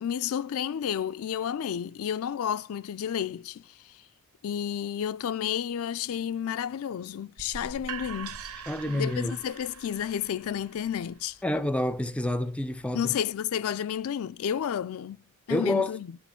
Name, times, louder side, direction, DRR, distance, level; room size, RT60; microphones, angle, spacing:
voice 1, 0.0-3.9 4.4-8.4 8.9-11.4 12.9-16.2, left 9 dB, 70° left, 0.3 m, -31 dB
sound 1, 7.4-13.2, right 6 dB, 75° right, 0.7 m, -44 dB
voice 2, 8.7-9.4 11.4-13.1 15.5-15.9, left 1 dB, 5° left, 0.4 m, -28 dB
8.3 x 4.4 x 5.6 m
head